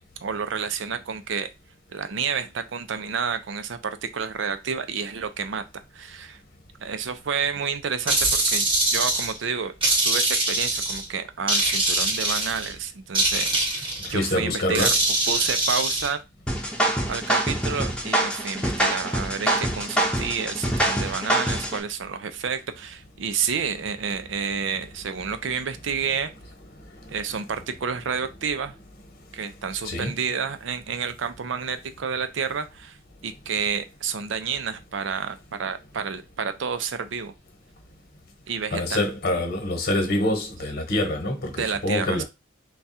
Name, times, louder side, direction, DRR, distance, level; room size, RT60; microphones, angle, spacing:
voice 1, 0.0-1.5 1.9-5.6 5.9-6.4 6.8-9.7 10.0-13.5 13.8-14.9 15.3-16.2 17.1-26.3 27.1-28.8 29.3-33.0 33.2-37.3 38.5-39.0 41.6-42.2, right 6 dB, 65° right, 0.5 m, -30 dB
sound 1, 8.1-9.4 9.8-11.0 11.5-12.7 13.1-14.1 14.7-16.1, right 2 dB, 25° right, 1.0 m, -23 dB
voice 2, 14.0-14.9 26.7-27.2 29.8-30.1 38.7-42.2, left 1 dB, 50° left, 1.1 m, -26 dB
sound 2, 16.5-21.8, right 1 dB, 5° left, 0.7 m, -25 dB
3.5 x 2.3 x 4.1 m
head